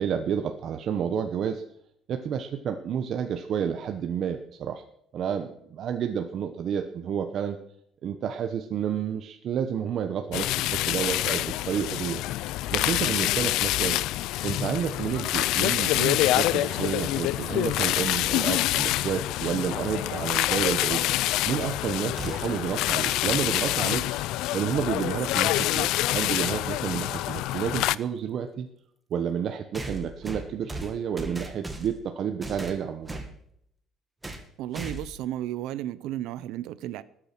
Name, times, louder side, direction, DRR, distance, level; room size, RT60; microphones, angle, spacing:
voice 1, 0.0-1.6 2.1-4.8 5.1-7.6 8.0-12.2 12.7-14.0 14.4-21.1 21.4-24.0 24.5-28.7 29.1-33.2, right 8 dB, 45° right, 1.1 m, -30 dB
sound 1, 10.3-27.9, left 16 dB, 80° left, 0.5 m, -26 dB
sound 2, 22.2-22.7 24.9-25.0 26.1-26.2 29.7-32.1 32.4-33.3 34.2-34.5 34.7-35.2, right 1 dB, 10° right, 2.0 m, -38 dB
voice 2, 34.6-37.0, right 13 dB, 80° right, 0.9 m, -33 dB
19.5 x 9.0 x 6.1 m
cardioid pair, 150°, 0 cm